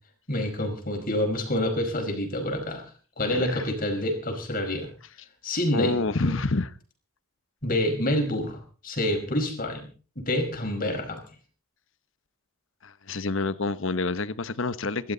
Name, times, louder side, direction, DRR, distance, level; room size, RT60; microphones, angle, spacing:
voice 1, 0.3-2.8 3.2-4.9 5.4-6.0 6.2-6.4 7.6-9.9 10.1-11.2, left 1 dB, 40° left, 5.1 m, -27 dB
voice 2, 3.3-3.6 5.7-6.7 12.8-15.1, left 3 dB, 60° left, 1.0 m, -28 dB
27.0 x 12.5 x 4.0 m
head